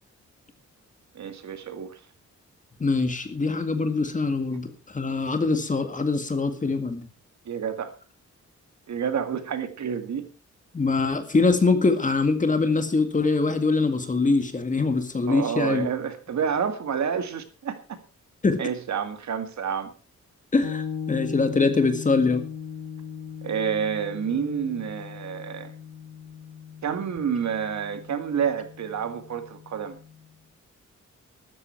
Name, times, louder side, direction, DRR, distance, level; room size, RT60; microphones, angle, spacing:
voice 1, 1.1-2.0 7.5-7.9 8.9-10.3 15.3-17.8 18.6-19.9 23.4-25.7 26.8-30.0, right 7 dB, 70° right, 9 dB, 2.1 m, -29 dB
voice 2, 2.8-7.1 10.7-15.9 18.4-18.6 20.5-22.4, left 3 dB, 25° left, 8 dB, 2.0 m, -23 dB
sound 1, 20.6-30.3, left 7 dB, 85° left, 1.6 m, -38 dB
14.5 x 13.0 x 4.6 m, 0.35 s
wide cardioid pair, 165°, 30 cm